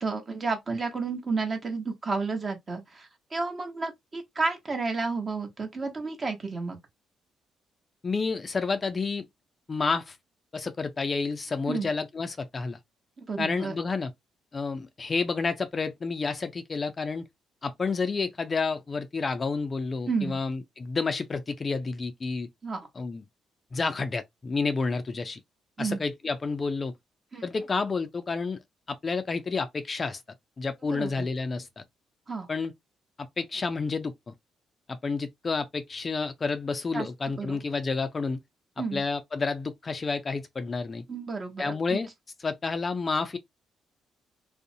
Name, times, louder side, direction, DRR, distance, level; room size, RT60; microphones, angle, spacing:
voice 1, 0.0-6.8 11.7-11.9 13.2-13.8 20.1-20.4 22.6-22.9 25.8-26.0 27.3-27.5 30.8-31.2 32.3-32.5 36.9-37.1 37.4-37.6 38.8-39.0 41.1-42.0, right 4 dB, 35° right, 0.9 m, -31 dB
voice 2, 8.0-9.3 9.7-10.2 10.5-12.8 13.4-14.1 14.5-17.2 17.6-22.5 23.0-23.2 23.7-25.4 25.8-26.9 27.4-28.6 28.9-30.2 30.6-31.8 32.5-32.7 33.2-34.3 34.9-38.4 38.9-41.0 41.6-42.1 42.4-43.4, left 4 dB, 35° left, 0.4 m, -30 dB
2.5 x 2.0 x 2.6 m
cardioid pair, 90°, 0 cm